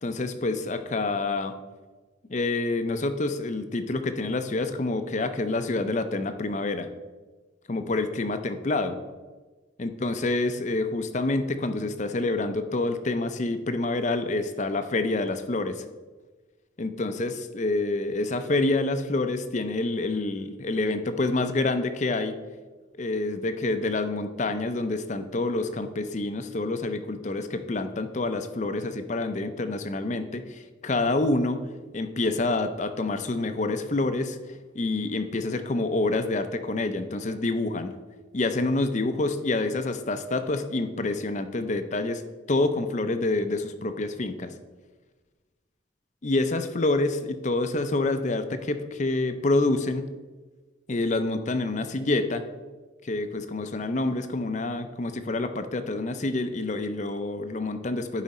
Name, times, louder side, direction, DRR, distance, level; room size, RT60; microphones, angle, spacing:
voice 1, 0.0-1.5 2.3-6.9 7.7-9.0 9.8-15.8 16.8-22.3 23.0-31.6 31.9-34.4 34.7-37.9 38.3-42.2 42.5-44.5 46.2-50.1 50.9-52.4 53.0-58.2, left 2 dB, 35° left, 9 dB, 0.5 m, -27 dB
11.5 x 4.9 x 4.2 m, 1.3 s
head